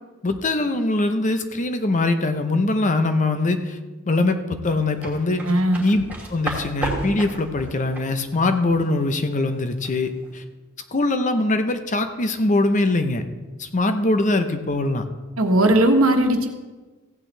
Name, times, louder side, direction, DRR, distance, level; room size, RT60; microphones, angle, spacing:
voice 1, 0.2-3.8 4.1-5.4 5.8-6.0 6.3-10.4 10.9-13.2 13.6-15.0, left 2 dB, 35° left, 8 dB, 0.7 m, -22 dB
sound 1, 4.7-9.9 10.2-10.4, right 1 dB, 10° right, 2.6 m, -32 dB
voice 2, 5.5-5.8 15.4-16.5, right 1 dB, 85° right, 4 dB, 1.3 m, -17 dB
15.5 x 9.0 x 3.3 m, 1.2 s
head